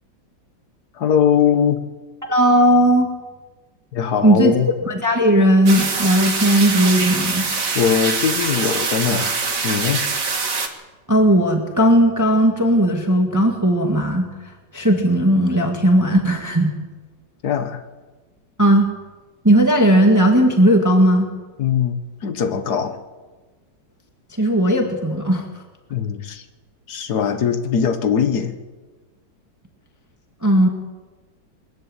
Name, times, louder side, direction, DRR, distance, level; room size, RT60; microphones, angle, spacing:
voice 1, 1.0-1.8 3.9-4.7 7.8-9.3 9.6-10.1 17.4-17.8 21.6-23.0 25.9-26.4 26.9-28.5, left 7 dB, 55° left, 9 dB, 1.9 m, -20 dB
voice 2, 2.3-3.1 4.2-4.5 4.9-7.4 11.1-14.3 14.7-16.8 18.6-18.9 19.4-21.3 24.4-25.5 30.4-30.7, equal, 10° right, 3 dB, 1.8 m, -16 dB
sound 1, 5.7-10.7, right 4 dB, 45° right, 2.2 m, -23 dB
22.5 x 14.0 x 9.0 m, 1.3 s
omnidirectional pair, 2.1 m